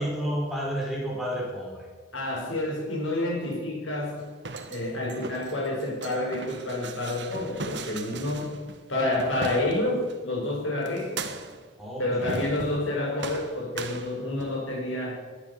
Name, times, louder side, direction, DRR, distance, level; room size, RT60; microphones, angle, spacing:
voice 1, 0.0-1.9 11.8-12.5, equal, ahead, -4 dB, 4.1 m, -31 dB
voice 2, 2.1-4.2 4.7-8.6 8.9-11.2 12.0-15.2, left 1 dB, 85° left, 0 dB, 4.7 m, -29 dB
sound 1, 4.2-10.2 10.9-11.7 12.2-12.9 13.2-14.7, right 3 dB, 65° right, 1.4 m, -39 dB
19.5 x 10.0 x 6.7 m, 1.5 s
head